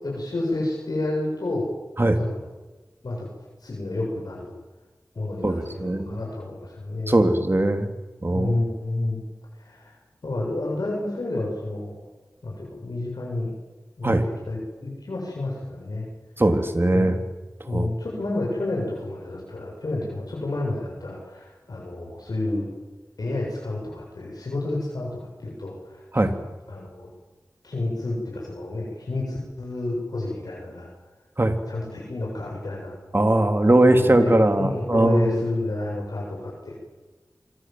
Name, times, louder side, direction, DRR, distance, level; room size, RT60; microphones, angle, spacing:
voice 1, 0.0-1.7 2.2-2.4 3.0-3.3 3.6-4.5 5.1-7.3 8.3-9.2 9.6-10.0 10.2-11.9 12.4-13.5 14.0-16.1 16.9-17.1 17.7-22.7 23.2-26.4 26.7-27.1 27.6-30.9 31.7-32.9 33.6-36.8, left 2 dB, 80° left, -2 dB, 7.6 m, -30 dB
voice 2, 5.4-6.2 7.1-7.9 8.2-8.5 14.0-14.2 16.4-17.2 17.7-17.9 26.1-26.3 31.4-31.5 33.1-35.4, right 1 dB, 35° right, 6 dB, 3.2 m, -20 dB
27.5 x 24.0 x 7.8 m, 1.3 s
wide cardioid pair, 55°, 6 cm